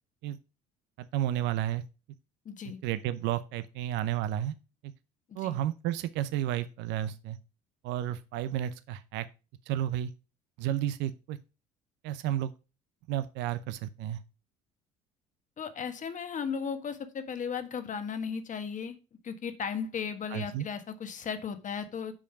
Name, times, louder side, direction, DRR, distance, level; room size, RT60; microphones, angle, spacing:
voice 1, 1.0-1.8 2.8-4.5 4.8-4.9 5.4-7.4 7.8-9.3 9.7-10.1 10.6-11.4 12.0-12.5 13.1-14.2 20.3-20.7, right 12 dB, 70° right, 0.7 m, -32 dB
voice 2, 2.4-2.8 5.3-5.6 15.6-19.0 19.2-22.1, left 6 dB, 40° left, 1.5 m, -36 dB
7.3 x 5.2 x 5.8 m
hypercardioid pair, 70°, 19 cm